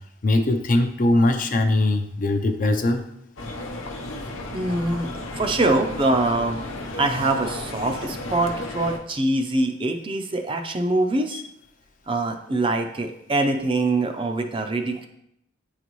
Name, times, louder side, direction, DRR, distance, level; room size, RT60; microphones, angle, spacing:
voice 1, 0.2-3.0, left 2 dB, 40° left, 6 dB, 0.5 m, -21 dB
sound 1, 3.4-9.0, left 2 dB, 80° left, 0.8 m, -34 dB
voice 2, 4.5-5.1 5.4-6.6 6.9-11.4 12.1-15.1, right 2 dB, 25° right, 5 dB, 0.4 m, -24 dB
8.8 x 4.0 x 3.0 m, 0.78 s
head